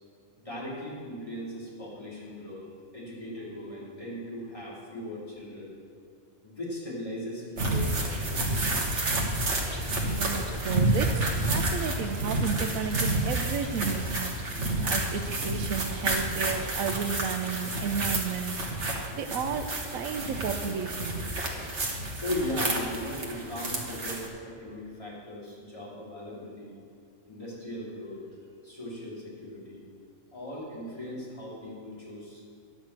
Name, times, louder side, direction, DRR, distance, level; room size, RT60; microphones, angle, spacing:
voice 1, 0.4-5.7 6.4-8.8 22.2-26.8 27.3-28.3 28.6-29.8 30.3-32.4, left 1 dB, 25° left, -8 dB, 3.5 m, -38 dB
sound 1, 7.6-24.3, right 2 dB, 60° right, 1.6 m, -30 dB
voice 2, 10.0-18.6 19.1-21.2, right 6 dB, 85° right, 8 dB, 1.1 m, -33 dB
10.5 x 6.6 x 7.3 m, 2.3 s
omnidirectional pair, 1.4 m